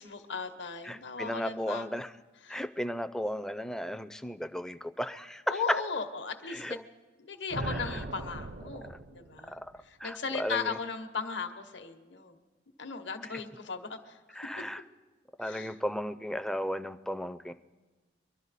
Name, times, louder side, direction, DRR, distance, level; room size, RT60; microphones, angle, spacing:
voice 1, 0.0-1.9 2.4-2.6 5.5-6.8 7.2-12.4 12.8-14.4 15.4-15.7, left 5 dB, 75° left, 6 dB, 1.0 m, -37 dB
voice 2, 0.8-2.1 2.5-5.8 6.5-6.8 7.7-8.0 8.8-9.0 9.5-9.6 10.0-10.8 14.3-14.8 15.4-17.5, equal, 5° left, 11 dB, 0.4 m, -35 dB
sound 1, 7.5-9.8, right 2 dB, 55° right, 0.5 m, -39 dB
23.5 x 12.0 x 4.1 m, 1.3 s
head